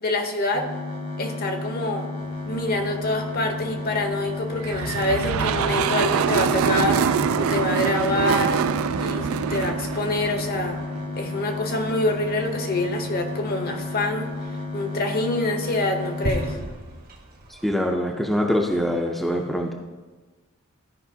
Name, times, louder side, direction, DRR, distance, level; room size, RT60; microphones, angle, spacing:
voice 1, 0.0-0.7 1.2-2.1 2.4-8.6 9.0-10.8 11.2-14.3 14.7-16.6, left 2 dB, 45° left, 5 dB, 0.8 m, -26 dB
sound 1, 0.5-16.5, left 3 dB, 70° left, 1.9 m, -32 dB
sound 2, 2.2-17.7, right 1 dB, 40° right, 0.9 m, -41 dB
sound 3, 4.6-11.0, right 7 dB, 65° right, 0.3 m, -24 dB
voice 2, 17.5-19.7, equal, ahead, 0 dB, 0.5 m, -24 dB
13.0 x 4.9 x 2.8 m, 1.2 s
head